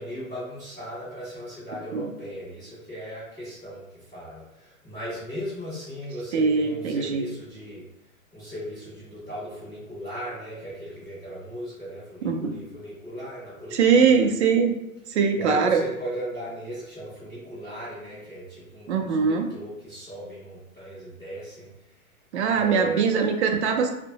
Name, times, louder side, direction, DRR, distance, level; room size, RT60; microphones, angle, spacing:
voice 1, 0.0-7.8 8.3-14.3 15.3-22.0 22.4-23.0, right 1 dB, 5° left, -13 dB, 0.5 m, -37 dB
voice 2, 6.3-7.2 12.2-12.6 13.7-14.8 15.1-15.8 18.9-19.5 22.3-23.9, right 5 dB, 55° right, 4 dB, 0.4 m, -22 dB
2.6 x 2.1 x 2.7 m, 0.87 s
hypercardioid pair, 145°, 42 cm